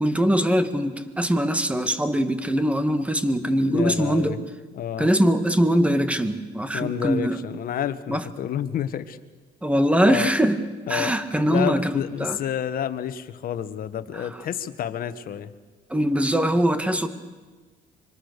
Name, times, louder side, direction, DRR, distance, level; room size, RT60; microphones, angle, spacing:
voice 1, 0.0-4.4 5.0-7.4 8.1-8.3 9.6-10.6 10.9-12.4 14.1-14.4 15.9-17.1, equal, 5° right, 10 dB, 1.8 m, -22 dB
voice 2, 3.6-4.4 4.8-5.1 6.7-9.2 10.0-10.3 10.9-11.1 11.5-15.5, left 10 dB, 60° left, 12 dB, 1.4 m, -29 dB
26.0 x 24.5 x 6.8 m, 1.3 s
cardioid pair, 110°, 17 cm